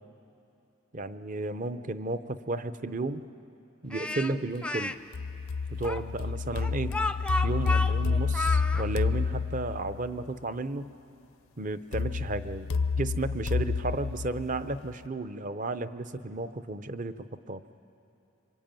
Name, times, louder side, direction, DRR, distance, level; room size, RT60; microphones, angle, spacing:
voice 1, 0.9-3.3 3.8-4.9 5.8-7.0 7.4-10.9 11.6-17.2 17.5-17.6, right 2 dB, 40° right, 11 dB, 0.7 m, -33 dB
Speech, 3.9-5.0 5.8-8.8, left 2 dB, 5° left, 0.5 m, -32 dB
sound 1, 5.1-10.1 11.9-14.9, left 5 dB, 90° left, 0.6 m, -29 dB
26.5 x 24.0 x 9.0 m, 2.7 s
head